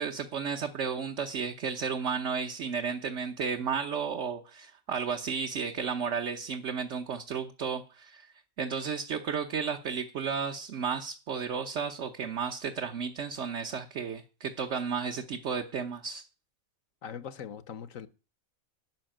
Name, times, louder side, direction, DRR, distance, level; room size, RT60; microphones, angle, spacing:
voice 1, 0.0-8.3 8.6-16.2, right 6 dB, 60° right, 1.3 m, -33 dB
voice 2, 17.0-18.1, left 8 dB, 70° left, 1.3 m, -41 dB
12.5 x 5.7 x 8.8 m
omnidirectional pair, 1.4 m